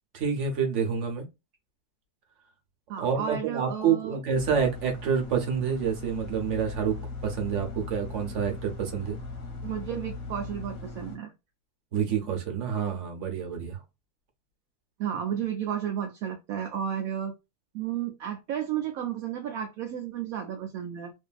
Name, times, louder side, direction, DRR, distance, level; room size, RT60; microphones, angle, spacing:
voice 1, 0.1-1.3 3.0-6.9 7.2-9.2 11.9-13.8, right 7 dB, 55° right, 1.1 m, -28 dB
voice 2, 2.9-4.2 9.6-11.3 15.0-17.3 17.7-21.1, right 9 dB, 70° right, 1.0 m, -32 dB
sound 1, 4.3-11.2, left 3 dB, 60° left, 0.9 m, -39 dB
2.6 x 2.6 x 2.3 m
omnidirectional pair, 1.7 m